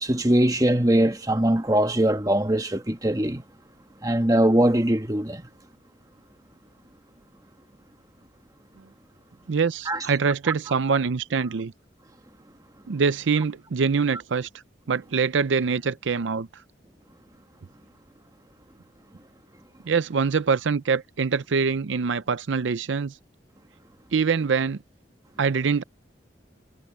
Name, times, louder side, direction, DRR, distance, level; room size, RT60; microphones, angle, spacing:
voice 1, 0.0-3.4 4.0-5.4 9.9-10.0, right 1 dB, 20° right, 1.3 m, -21 dB
voice 2, 9.5-11.7 12.9-14.5 14.9-16.5 19.9-23.2 24.1-24.8 25.4-25.8, right 5 dB, 85° right, 0.5 m, -24 dB
head